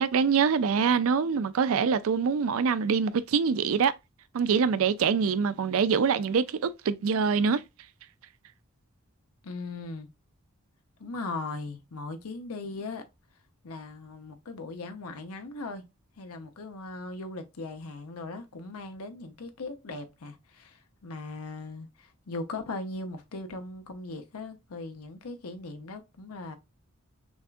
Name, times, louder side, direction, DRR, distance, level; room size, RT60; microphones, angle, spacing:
voice 1, 0.0-3.9 4.3-7.6, right 6 dB, 70° right, 0.4 m, -24 dB
voice 2, 9.4-10.1 11.0-13.0 13.6-15.8 16.2-26.6, left 3 dB, 85° left, 0.8 m, -39 dB
6.1 x 2.4 x 2.5 m
head